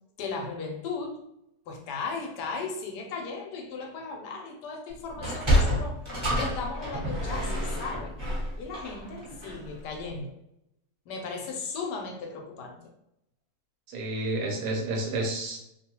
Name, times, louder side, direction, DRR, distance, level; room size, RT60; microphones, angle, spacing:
voice 1, 0.2-1.2 1.7-6.0 6.4-8.2 8.6-10.4 11.1-12.9, left 4 dB, 85° left, 2 dB, 1.2 m, -36 dB
Sliding door, 5.1-9.7, equal, 20° right, 1.0 m, -28 dB
voice 2, 13.9-15.6, right 2 dB, 75° right, 1 dB, 1.2 m, -30 dB
2.9 x 2.3 x 2.9 m, 0.80 s
omnidirectional pair, 1.8 m